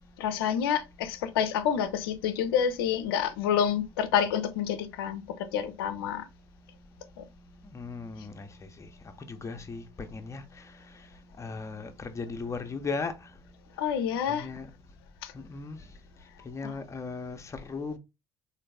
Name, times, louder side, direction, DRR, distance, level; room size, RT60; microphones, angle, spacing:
voice 1, 0.2-6.3 7.2-7.3 13.8-14.5 15.2-15.3 16.6-16.7, left 8 dB, 75° left, 0.5 m, -28 dB
voice 2, 7.6-8.9 9.2-11.1 11.4-13.3 14.3-14.7 15.3-15.8 16.4-18.0, left 4 dB, 25° left, 0.7 m, -37 dB
3.9 x 2.6 x 3.3 m
figure-of-eight pair, 55°, 12 cm